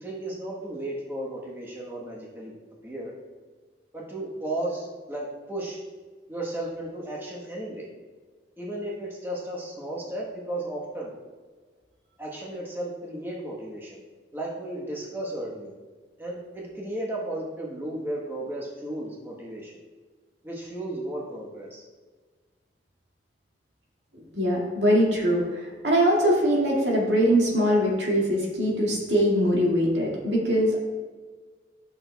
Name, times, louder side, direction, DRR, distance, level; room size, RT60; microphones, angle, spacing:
voice 1, 0.0-2.5 2.8-3.1 3.9-5.8 6.3-7.9 8.6-11.1 12.2-14.0 14.3-15.7 16.2-19.7 20.4-21.8, right 1 dB, 10° right, -4 dB, 1.1 m, -34 dB
voice 2, 24.3-30.8, equal, 80° right, -3 dB, 1.9 m, -22 dB
11.5 x 6.2 x 2.3 m, 1.4 s
head